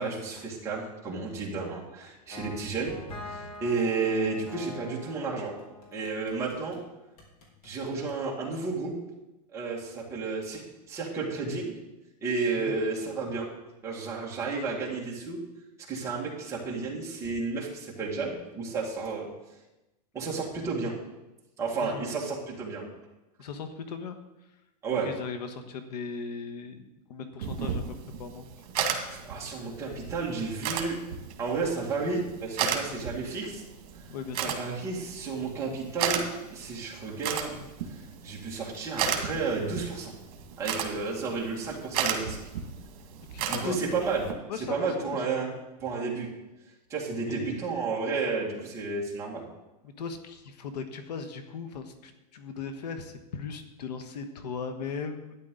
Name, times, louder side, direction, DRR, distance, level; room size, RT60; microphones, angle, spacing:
voice 1, 0.0-3.0 3.2-5.5 5.9-6.8 7.6-8.9 9.5-10.6 10.9-11.8 12.2-13.5 13.8-15.4 15.9-19.3 20.1-20.9 21.6-22.8 24.8-25.1 29.1-31.0 31.4-33.6 34.4-36.2 36.5-37.6 37.9-40.1 40.6-42.4 43.4-44.3 44.7-45.5 45.8-46.3 46.9-49.4, right 4 dB, 15° right, -4 dB, 2.0 m, -32 dB
sound 1, 2.3-6.8 7.2-8.2, left 2 dB, 65° left, 3.2 m, -45 dB
voice 2, 23.4-24.2 24.9-28.5 34.1-34.5 43.3-43.8 44.5-45.6 47.3-47.8 49.8-55.3, left 5 dB, 85° left, 8 dB, 1.3 m, -38 dB
sound 2, 27.4-44.3, right 7 dB, 60° right, 1.9 m, -35 dB
12.0 x 9.7 x 3.8 m, 1.0 s
supercardioid pair, 175°, 21 cm